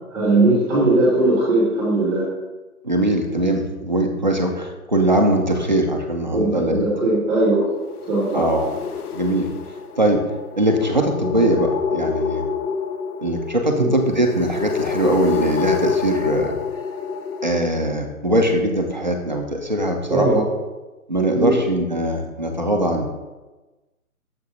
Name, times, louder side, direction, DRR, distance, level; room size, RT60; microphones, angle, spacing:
voice 1, 0.1-2.2 6.3-7.6 8.1-8.5 13.7-13.9 20.1-20.4 21.3-21.5, right 2 dB, 5° right, -7 dB, 1.4 m, -19 dB
voice 2, 2.8-6.9 8.3-8.8 9.1-9.5 10.0-10.3 10.6-12.5 13.2-16.5 17.4-20.4 21.1-23.2, right 1 dB, 35° right, 3 dB, 0.4 m, -21 dB
sound 1, 7.8-17.7, left 6 dB, 85° left, 0.6 m, -27 dB
6.7 x 5.9 x 2.7 m, 1.1 s
hypercardioid pair, 160°, 44 cm